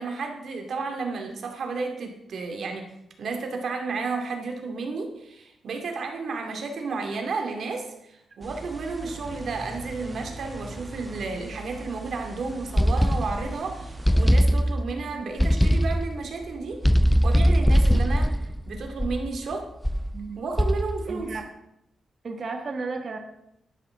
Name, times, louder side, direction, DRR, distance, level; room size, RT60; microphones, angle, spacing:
voice 1, 0.0-2.9 3.2-18.3 18.7-19.7 20.4-21.4, right 4 dB, 60° right, 3 dB, 2.3 m, -32 dB
sound 1, 8.4-14.3, right 2 dB, 15° right, 1.3 m, -40 dB
sound 2, 12.8-13.6 14.1-15.0 15.4-16.2 16.8-19.4 19.8-20.2 20.6-21.1, equal, 5° left, 0.4 m, -21 dB
voice 2, 20.1-20.4 21.1-21.4 22.2-23.2, right 4 dB, 40° right, 4 dB, 1.5 m, -33 dB
12.0 x 11.0 x 3.8 m, 0.81 s
cardioid pair, 125°, 0 cm